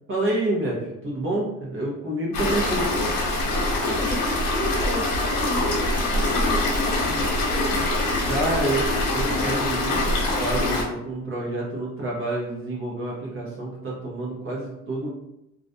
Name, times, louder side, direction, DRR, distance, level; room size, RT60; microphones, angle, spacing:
voice 1, 0.1-2.9 8.3-15.1, right 2 dB, 40° right, -4 dB, 0.8 m, -28 dB
sound 1, 2.3-10.8, left 2 dB, 85° left, 0.9 m, -24 dB
voice 2, 3.8-7.9, equal, 10° left, -6 dB, 0.9 m, -33 dB
2.4 x 2.2 x 2.5 m, 0.86 s
cardioid pair, 105°, 33 cm